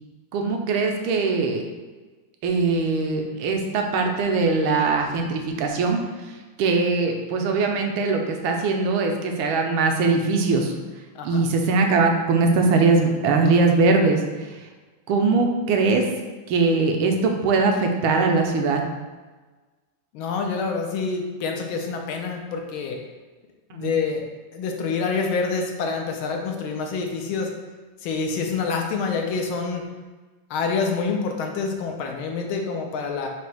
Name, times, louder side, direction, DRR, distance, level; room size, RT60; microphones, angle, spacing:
voice 1, 0.3-1.6 2.4-6.0 6.6-10.7 11.2-14.5 15.1-16.1 16.5-18.8 23.7-23.9, right 3 dB, 80° right, 3 dB, 1.4 m, -21 dB
voice 2, 20.1-23.0 23.7-24.2 24.5-27.5 28.0-29.8 30.5-33.3, left 4 dB, 80° left, 2 dB, 1.4 m, -27 dB
4.1 x 2.8 x 4.6 m, 1.3 s
omnidirectional pair, 2.3 m